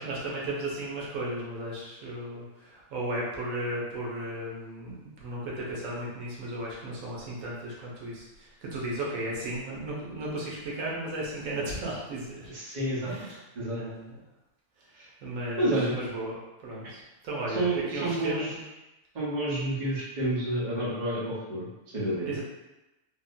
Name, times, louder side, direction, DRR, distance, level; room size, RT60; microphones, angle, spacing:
voice 1, 0.0-12.5 13.0-13.4 13.7-14.2 14.8-14.9 15.2-18.7 22.2-22.4, right 1 dB, 85° right, -4 dB, 1.2 m, -35 dB
voice 2, 12.5-13.1 13.6-13.8 15.0-15.1 15.6-15.9 17.5-18.5 19.1-22.3, right 1 dB, 40° right, -8 dB, 1.0 m, -29 dB
3.6 x 2.1 x 2.6 m, 1.0 s
omnidirectional pair, 1.4 m